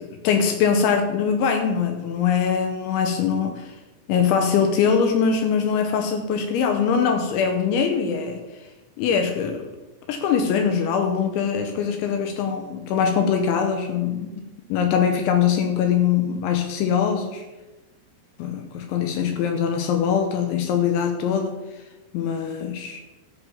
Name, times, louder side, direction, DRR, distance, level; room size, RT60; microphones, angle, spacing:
voice 1, 0.0-3.7 4.1-8.4 9.0-9.7 10.1-14.4 14.7-17.4 18.4-21.6 22.1-23.0, left 7 dB, 80° left, 5 dB, 3.2 m, -22 dB
13.5 x 6.0 x 7.4 m, 1.1 s
omnidirectional pair, 5.4 m